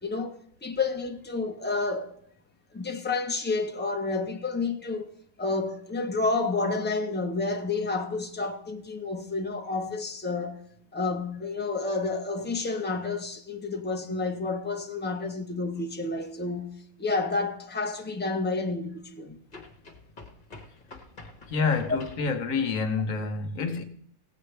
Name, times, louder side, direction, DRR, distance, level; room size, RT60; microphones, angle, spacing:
voice 1, 0.0-2.2 2.7-5.1 5.4-10.6 10.9-19.4, left 3 dB, 10° left, 0.5 m, -30 dB
sound 1, 17.1-17.2 19.5-22.3, left 2 dB, 30° left, 1.4 m, -47 dB
voice 2, 21.5-23.8, left 4 dB, 60° left, 1.3 m, -28 dB
17.5 x 8.0 x 3.3 m
omnidirectional pair, 1.7 m